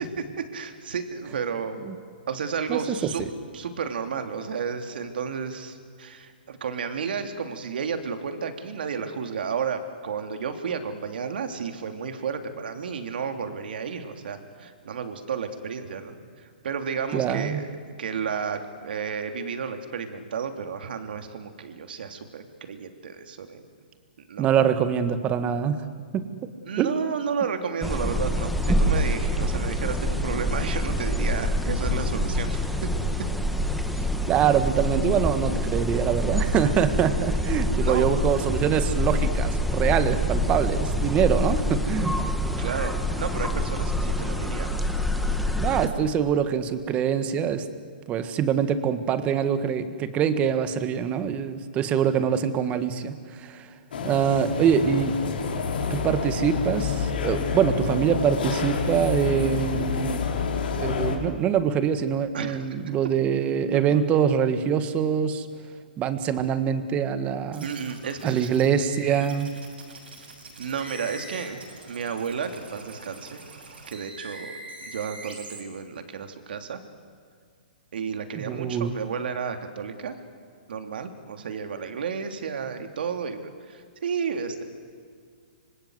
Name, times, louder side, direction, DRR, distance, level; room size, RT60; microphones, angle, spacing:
voice 1, 0.0-1.8 2.3-3.2 3.5-17.7 18.0-23.7 24.3-24.5 26.6-32.9 33.9-34.1 37.8-38.1 42.6-44.7 62.3-62.9 63.7-64.0 67.6-68.5 70.6-73.4 73.9-76.8 77.9-80.2 80.7-84.6, right 6 dB, 70° right, 6 dB, 3.0 m, -32 dB
voice 2, 17.1-17.6 24.4-25.9 26.1-26.2 26.8-27.0 34.3-42.3 45.6-47.7 48.1-53.7 54.0-55.2 55.9-60.2 60.7-65.5 66.0-67.7 68.2-69.5 78.3-78.9, right 8 dB, 25° right, 11 dB, 1.7 m, -24 dB
sound 1, 27.8-45.9, left 1 dB, ahead, 1.6 m, -26 dB
sound 2, 53.9-61.2, left 5 dB, 70° left, 4.6 m, -28 dB
sound 3, 67.5-75.6, right 2 dB, 85° right, 7.1 m, -43 dB
26.0 x 25.5 x 8.1 m, 2.1 s
hypercardioid pair, 140°, 5 cm